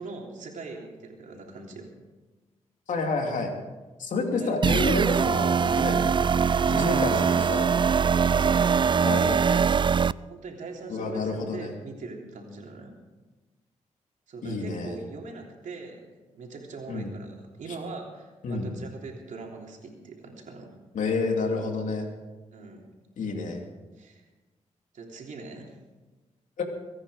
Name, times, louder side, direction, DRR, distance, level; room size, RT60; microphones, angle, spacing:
voice 1, 0.0-1.9 4.3-4.5 6.6-8.7 10.2-12.9 14.3-20.7 22.5-22.9 24.0-24.2 24.9-25.7, right 3 dB, 75° right, 0 dB, 3.3 m, -41 dB
voice 2, 2.9-3.5 4.0-6.4 6.6-7.2 7.5-7.7 9.0-9.7 10.9-11.7 14.4-15.0 16.9-17.1 18.4-18.7 20.9-22.1 23.2-23.6 26.6-26.7, left 3 dB, 80° left, 2 dB, 2.9 m, -29 dB
sound 1, 4.6-10.1, right 6 dB, 35° right, 0.4 m, -22 dB
23.5 x 9.9 x 5.1 m, 1.2 s
cardioid pair, 55°, 13 cm